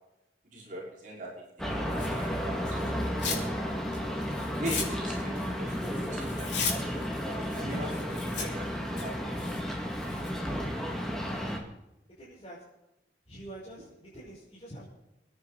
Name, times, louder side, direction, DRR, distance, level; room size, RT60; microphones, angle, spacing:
voice 1, 0.5-1.3 1.7-3.9 4.6-6.9 7.2-8.6 8.9-9.4, right 1 dB, 45° right, -4 dB, 5.3 m, -41 dB
sound 1, 1.6-11.6, equal, ahead, 2.2 m, -33 dB
Tearing, 1.9-3.5 3.8-10.4, left 5 dB, 85° left, 4.0 m, -38 dB
voice 2, 10.5-11.7 12.2-12.6 13.3-14.8, right 1 dB, 30° left, -9 dB, 5.5 m, -47 dB
28.0 x 10.0 x 4.2 m, 0.92 s
head